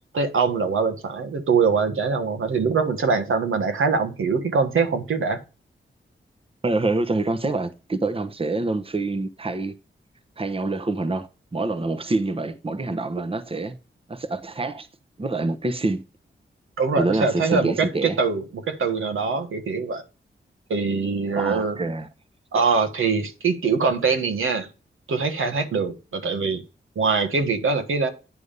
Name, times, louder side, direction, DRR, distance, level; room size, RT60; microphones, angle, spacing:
voice 1, 0.1-5.4 14.6-14.7 16.8-20.0 20.7-21.8 22.5-24.7 25.1-26.6 26.9-28.1, right 4 dB, 85° right, 1.5 m, -23 dB
voice 2, 6.6-9.7 10.4-13.8 14.1-14.9 15.2-16.0 17.0-18.2 21.3-22.1, right 2 dB, 25° right, 1.0 m, -26 dB
9.6 x 3.6 x 6.7 m
cardioid pair, 60°, 20 cm